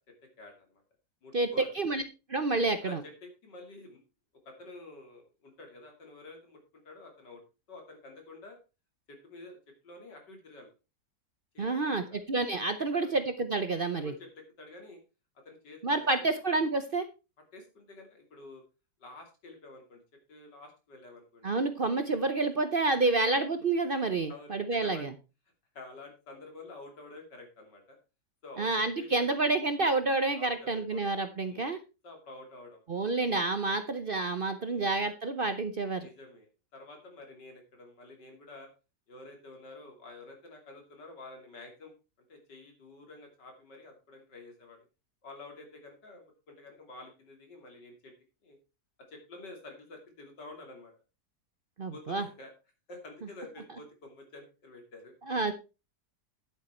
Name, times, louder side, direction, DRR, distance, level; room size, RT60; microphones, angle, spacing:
voice 1, 0.2-0.8 1.2-1.7 2.8-4.0 4.5-6.6 6.9-7.4 7.7-8.6 9.1-10.7 11.5-12.2 12.8-13.2 13.9-15.0 15.4-16.2 17.5-18.6 19.0-20.0 20.3-21.6 24.3-25.1 25.8-28.0 28.4-29.4 30.4-31.2 31.5-31.7 32.0-32.8 34.6-34.9 36.0-38.7 39.1-41.9 42.3-44.9 45.2-48.1 48.4-48.6 49.1-50.9 51.9-52.5 52.9-55.1, left 2 dB, 90° left, 3 dB, 3.4 m, -49 dB
voice 2, 2.3-3.0 11.6-14.1 15.8-17.1 21.4-25.1 28.6-31.8 32.9-36.1 51.8-52.2 55.3-55.5, right 3 dB, 45° right, 9 dB, 0.7 m, -29 dB
10.5 x 8.0 x 4.4 m, 0.30 s
omnidirectional pair, 1.8 m